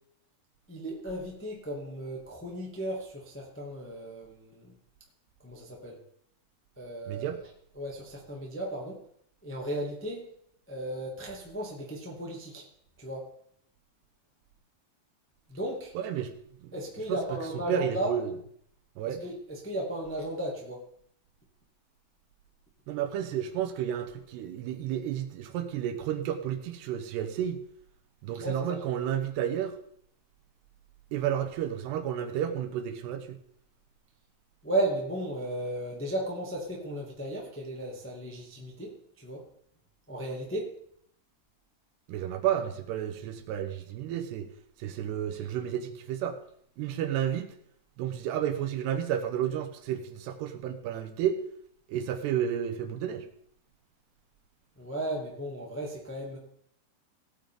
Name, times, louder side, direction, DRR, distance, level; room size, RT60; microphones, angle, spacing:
voice 1, 0.7-4.7 5.4-6.0 6.8-7.3 7.7-9.0 9.4-10.3 10.7-12.6 13.0-13.3 15.5-15.9 16.7-18.1 19.1-20.8 28.4-28.8 34.6-39.4 40.1-40.7 54.8-56.4, right 1 dB, 10° left, -2 dB, 0.6 m, -35 dB
voice 2, 7.1-7.4 15.9-16.3 16.6-16.7 17.1-17.2 17.7-18.3 19.0-19.2 22.9-27.6 28.2-29.8 31.1-33.4 42.1-44.5 44.8-46.4 46.8-47.5 48.0-51.4 51.9-53.3, right 10 dB, 80° right, 7 dB, 3.0 m, -31 dB
18.0 x 8.9 x 3.8 m, 0.67 s
omnidirectional pair, 4.9 m